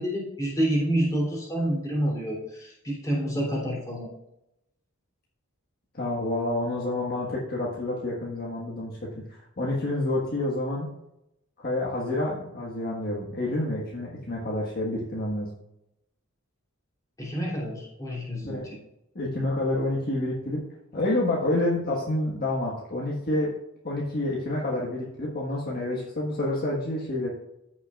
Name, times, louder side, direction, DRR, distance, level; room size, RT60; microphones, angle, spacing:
voice 1, 0.0-4.1 17.2-18.8, right 1 dB, 15° left, -5 dB, 3.1 m, -28 dB
voice 2, 6.0-10.9 11.6-15.5 18.5-18.6 19.1-20.6 20.9-23.5 23.8-27.3, left 1 dB, 45° left, -4 dB, 1.5 m, -28 dB
14.0 x 6.1 x 2.5 m, 0.85 s
head